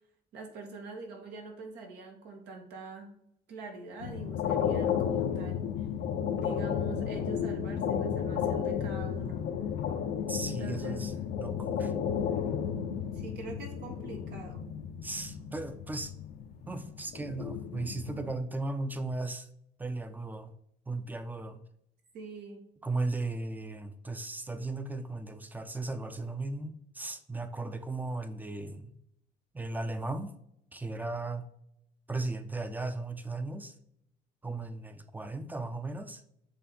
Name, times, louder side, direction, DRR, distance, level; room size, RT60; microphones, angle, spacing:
voice 1, 0.3-3.1 3.5-5.9 6.3-9.5 10.6-11.1 13.1-14.7 22.1-22.7, right 3 dB, 80° right, 2 dB, 1.8 m, -44 dB
sound 1, 4.0-18.3, left 8 dB, 75° left, 0.8 m, -33 dB
voice 2, 10.3-11.9 15.0-16.1 16.7-19.5 19.8-20.5 20.9-21.6 22.8-28.9 29.5-30.3 30.7-31.5 32.1-33.7 34.4-36.2, right 2 dB, 10° right, 10 dB, 0.6 m, -36 dB
7.9 x 3.3 x 4.2 m, 0.76 s
cardioid pair, 110°, 17 cm